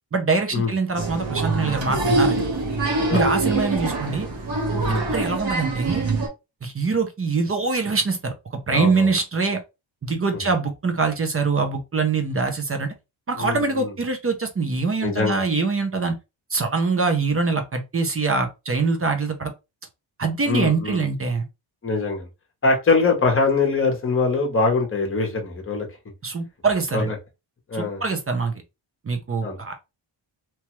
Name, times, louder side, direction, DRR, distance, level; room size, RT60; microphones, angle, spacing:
voice 1, 0.1-2.5 3.1-4.3 4.9-6.0 6.6-9.6 10.0-12.9 13.3-16.2 16.5-19.5 20.2-21.4 26.2-27.1 27.7-28.5 29.0-29.7, right 4 dB, 30° right, 0.4 m, -24 dB
Applause, 0.9-6.3, right 2 dB, 70° right, 1.2 m, -24 dB
voice 2, 8.7-9.1 13.4-13.9 15.0-15.4 20.5-21.0 21.8-22.3 22.6-25.9 26.9-27.1 27.7-28.0 29.4-29.6, left 4 dB, 25° left, 0.8 m, -23 dB
2.9 x 2.2 x 2.9 m
wide cardioid pair, 175°, 48 cm